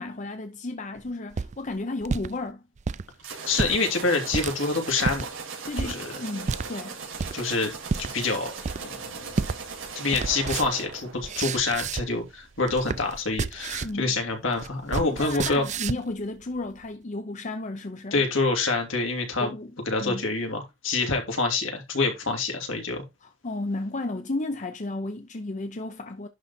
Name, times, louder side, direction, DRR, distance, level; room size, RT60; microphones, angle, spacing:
voice 1, 0.0-2.6 5.7-7.0 13.8-14.1 15.0-18.2 19.4-19.7 20.0-20.3 23.2-26.3, left 2 dB, 35° left, 0.7 m, -33 dB
sound 1, 1.1-2.3 2.8-3.0 3.5-3.8 4.3-4.6 5.0-5.3 5.8-5.9 6.5-6.7 7.2-7.5 7.9-8.1 8.6-9.0 9.4-9.6 9.9-12.3 12.6-14.0 14.3-16.1, right 4 dB, 35° right, 0.4 m, -30 dB
sound 2, 3.2-11.8, right 5 dB, 75° right, 4.4 m, -39 dB
voice 2, 3.3-5.3 5.8-6.2 7.3-7.7 8.0-9.4 9.9-15.6 18.1-19.5 19.9-23.0, left 3 dB, 70° left, 3.0 m, -27 dB
11.0 x 4.0 x 4.3 m
head